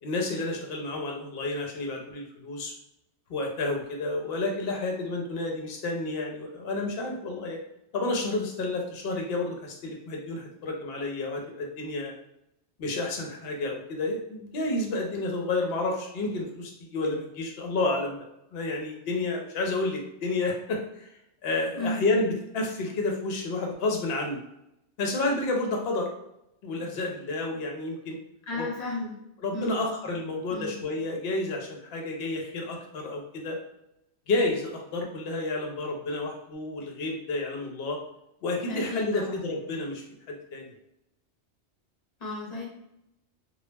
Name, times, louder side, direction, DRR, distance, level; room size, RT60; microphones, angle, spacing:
voice 1, 0.0-2.7 3.3-7.6 7.9-12.1 12.8-18.2 18.5-21.1 21.4-24.4 25.0-26.1 26.6-28.2 28.6-28.7 29.4-33.6 34.3-38.0 38.4-40.7, left 2 dB, 65° left, 1 dB, 0.8 m, -30 dB
voice 2, 28.5-29.1 29.5-29.8 30.5-30.7 38.7-39.4 42.2-42.6, left 2 dB, 40° left, -3 dB, 0.9 m, -33 dB
2.2 x 2.0 x 3.2 m, 0.82 s
omnidirectional pair, 1.2 m